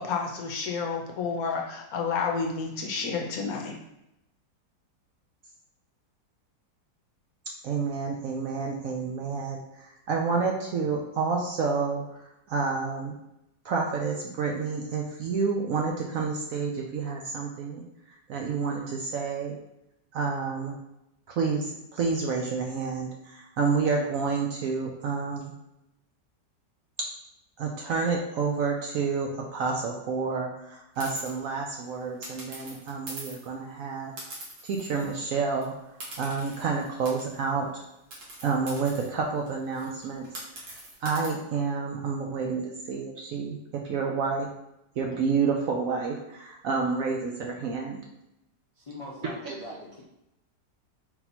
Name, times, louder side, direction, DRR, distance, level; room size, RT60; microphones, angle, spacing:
voice 1, 0.0-3.8, left 5 dB, 70° left, 1 dB, 1.0 m, -30 dB
voice 2, 7.6-12.2 12.5-13.1 13.6-17.8 18.3-19.6 20.1-20.8 21.3-25.5 27.6-34.1 34.6-35.7 36.2-37.8 38.4-40.3 41.0-44.5 45.0-48.0 49.5-49.6, right 5 dB, 70° right, 0 dB, 0.8 m, -29 dB
sound 1, 30.9-31.3 32.2-33.5 34.2-35.2 35.5-35.6 36.0-37.5 38.1-41.3, right 1 dB, 85° right, 2.0 m, -43 dB
voice 3, 48.7-50.0, left 1 dB, 45° left, -6 dB, 0.4 m, -42 dB
4.2 x 2.7 x 4.2 m, 0.85 s
omnidirectional pair, 1.9 m